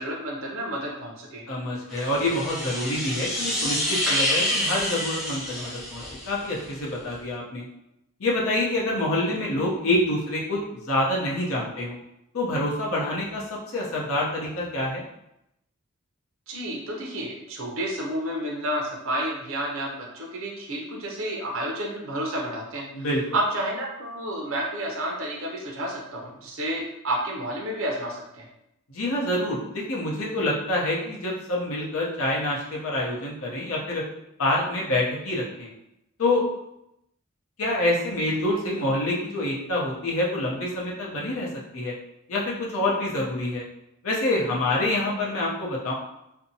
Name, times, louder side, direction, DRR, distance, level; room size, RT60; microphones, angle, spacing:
voice 1, 0.0-1.4 16.5-23.1 23.3-28.5, right 1 dB, 65° right, -1 dB, 0.6 m, -30 dB
voice 2, 1.5-7.6 8.2-12.0 12.3-13.4 13.7-15.0 22.9-23.2 28.9-34.0 34.4-35.7 36.2-36.4 37.6-41.9 42.3-43.6 44.0-45.9, left 1 dB, 80° left, -4 dB, 0.7 m, -26 dB
sound 1, 1.9-6.6, left 1 dB, ahead, 0.4 m, -28 dB
2.6 x 2.1 x 2.7 m, 0.84 s
head